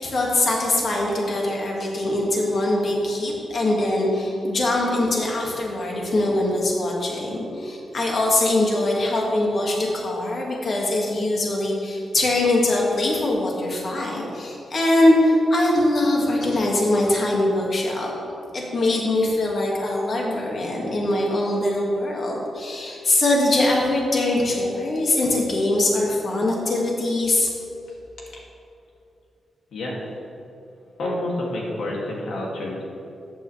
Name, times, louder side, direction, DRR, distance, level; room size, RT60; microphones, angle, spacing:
voice 1, 0.0-18.1 18.5-27.5, left 1 dB, 45° left, -2 dB, 2.0 m, -22 dB
voice 2, 29.7-30.0 31.0-32.8, left 1 dB, 80° left, -3 dB, 2.4 m, -28 dB
14.0 x 8.8 x 3.4 m, 2.7 s
wide cardioid pair, 150°, 0 cm